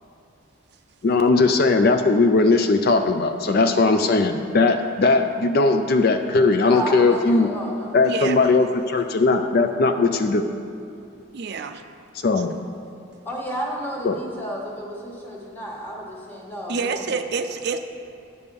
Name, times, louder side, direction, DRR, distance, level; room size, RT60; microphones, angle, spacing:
voice 1, 1.0-7.5 7.9-10.5 12.2-12.5 14.0-14.2, left 3 dB, 45° left, 7 dB, 0.4 m, -19 dB
voice 2, 6.6-8.0 13.2-17.3, equal, 10° left, -3 dB, 1.3 m, -32 dB
voice 3, 8.0-8.6 11.3-11.8 16.7-17.8, right 5 dB, 50° right, 7 dB, 0.4 m, -27 dB
9.7 x 5.3 x 6.8 m, 2.7 s
head